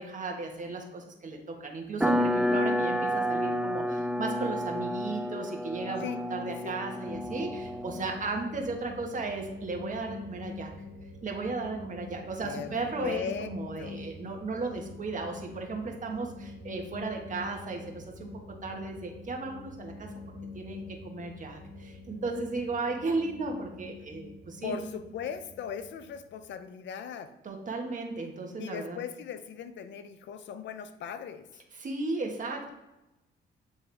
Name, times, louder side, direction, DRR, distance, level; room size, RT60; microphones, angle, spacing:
voice 1, 0.0-6.0 6.3-10.7 11.2-20.1 20.5-24.9 27.4-29.0 31.8-32.7, right 3 dB, 40° right, 2 dB, 1.4 m, -35 dB
sound 1, 2.0-8.2, equal, 5° right, 0.4 m, -30 dB
voice 2, 6.5-6.8 12.4-13.5 13.8-14.0 24.6-27.3 28.6-31.5, left 7 dB, 70° left, 11 dB, 0.6 m, -38 dB
sound 2, 7.1-26.5, left 3 dB, 30° left, 1.5 m, -45 dB
8.1 x 3.5 x 3.4 m, 0.98 s
cardioid pair, 90°, 20 cm